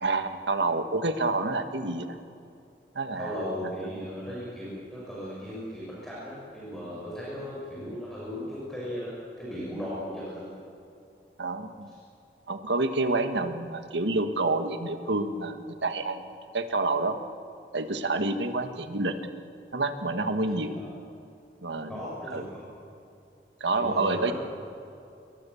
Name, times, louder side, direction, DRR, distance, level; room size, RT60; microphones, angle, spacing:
voice 1, 0.0-2.1 2.9-3.5 11.4-11.9 12.5-17.2 17.7-19.1 19.7-20.8 21.6-22.0 22.3-22.4 23.6-24.3, right 2 dB, 85° right, 8 dB, 1.7 m, -28 dB
voice 2, 3.2-10.5 11.9-12.0 20.7-20.9 21.9-22.6 23.7-24.3, equal, 5° left, -8 dB, 6.9 m, -37 dB
28.5 x 22.0 x 7.2 m, 2.6 s
head